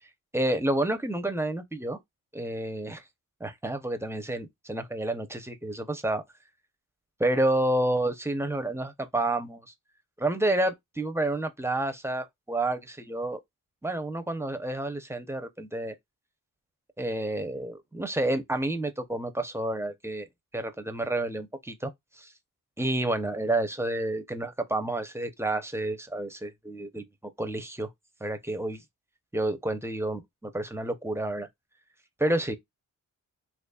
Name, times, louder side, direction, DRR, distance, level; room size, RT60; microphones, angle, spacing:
voice 1, 0.3-2.0 2.3-3.0 3.4-6.2 7.2-9.7 10.2-13.4 13.8-15.9 17.0-20.3 20.5-21.9 22.2-22.3 22.8-27.0 27.4-27.9 28.2-28.8 29.3-31.5 32.2-32.5, right 1 dB, 5° right, 0.6 m, -29 dB
4.0 x 3.0 x 2.3 m
wide cardioid pair, 100°, 35 cm